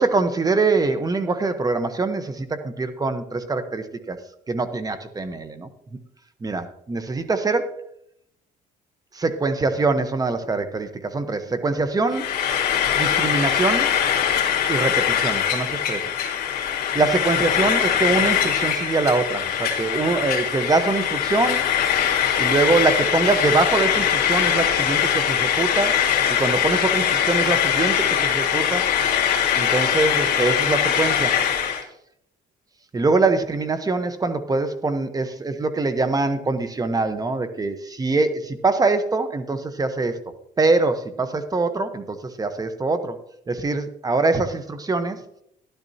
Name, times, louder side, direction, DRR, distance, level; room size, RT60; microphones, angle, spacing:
voice 1, 0.0-4.2 4.5-6.0 6.4-7.8 9.1-12.4 12.9-14.0 14.7-16.1 16.9-21.7 22.4-26.0 26.4-28.9 29.5-31.4 32.9-40.2 40.6-43.2 43.5-45.2, right 3 dB, 20° right, 10 dB, 1.0 m, -23 dB
Frying (food), 12.1-31.8, left 9 dB, 65° left, 2.5 m, -22 dB
12.5 x 11.5 x 2.8 m, 0.74 s
cardioid pair, 110°, 17 cm